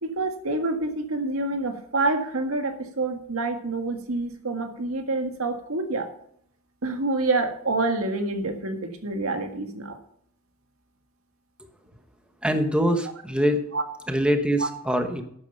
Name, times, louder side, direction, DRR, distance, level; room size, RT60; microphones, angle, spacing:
voice 1, 0.0-6.1 6.8-10.0 13.7-13.8 14.6-14.7, right 2 dB, 80° right, 5 dB, 1.8 m, -27 dB
voice 2, 12.4-13.6 14.1-15.2, equal, 5° right, 6 dB, 1.1 m, -23 dB
11.5 x 8.6 x 5.4 m, 0.66 s
head